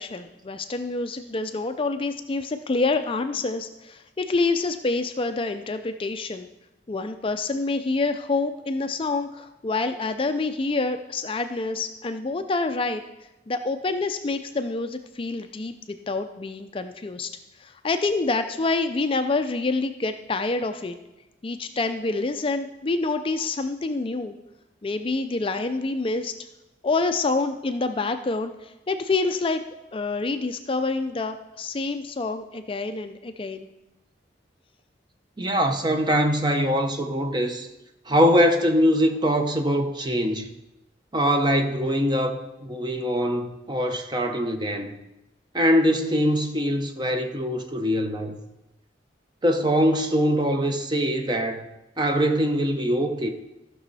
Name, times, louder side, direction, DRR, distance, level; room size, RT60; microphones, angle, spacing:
voice 1, 0.0-6.5 6.9-13.0 13.5-17.3 17.6-21.0 21.4-24.3 24.8-26.3 26.8-29.6 29.9-33.7, left 3 dB, 30° left, 0.4 m, -27 dB
voice 2, 35.4-37.7 38.1-40.5 41.1-45.0 45.5-48.4 49.4-51.7 52.0-53.3, equal, 25° right, 0.9 m, -23 dB
14.5 x 6.2 x 4.1 m
head